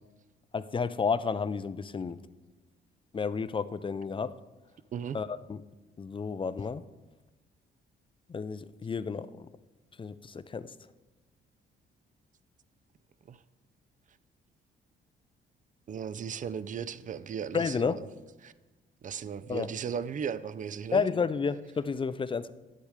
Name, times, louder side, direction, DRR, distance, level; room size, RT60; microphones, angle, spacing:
voice 1, 0.5-2.2 3.1-4.3 5.1-5.6 6.0-6.8 8.3-9.5 10.0-10.7 17.5-18.1 19.5-19.7 20.9-22.5, left 5 dB, 25° left, 14 dB, 0.5 m, -31 dB
voice 2, 15.9-18.0 18.4-18.5 19.0-21.1, right 7 dB, 40° right, 16 dB, 0.5 m, -36 dB
10.5 x 7.9 x 4.9 m, 1.2 s
cardioid pair, 90°, 20 cm